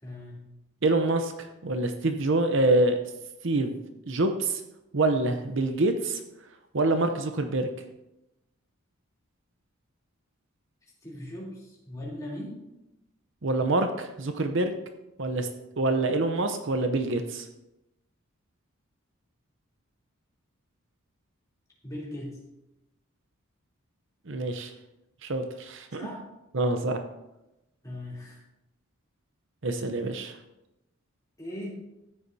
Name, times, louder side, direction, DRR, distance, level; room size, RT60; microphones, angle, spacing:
voice 1, 0.0-0.4 11.0-12.6 21.8-22.4 26.0-26.3 27.8-28.4 31.4-31.7, left 1 dB, 15° left, -5 dB, 3.3 m, -39 dB
voice 2, 0.8-3.0 3.4-3.8 4.1-4.6 4.9-6.2 6.7-7.7 13.4-14.8 15.2-15.5 15.8-17.5 24.3-24.7 25.2-26.1 26.5-27.0 29.6-30.4, right 2 dB, 60° right, 7 dB, 0.8 m, -26 dB
13.5 x 9.7 x 2.8 m, 0.92 s
head